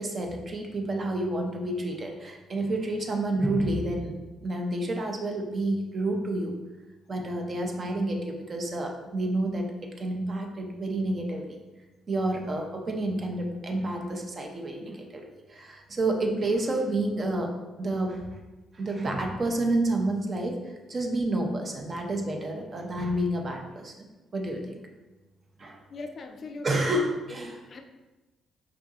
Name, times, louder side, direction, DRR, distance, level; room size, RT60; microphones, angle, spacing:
voice 1, 0.0-6.5 7.1-11.6 12.1-17.5 17.8-18.3 18.7-23.9 24.3-24.8 25.6-25.8 26.6-27.6, right 1 dB, 40° right, 2 dB, 0.6 m, -29 dB
voice 2, 25.9-26.9 27.7-27.8, left 3 dB, 50° left, 5 dB, 0.3 m, -40 dB
4.7 x 2.6 x 2.4 m, 1.1 s
cardioid pair, 90°, 0 cm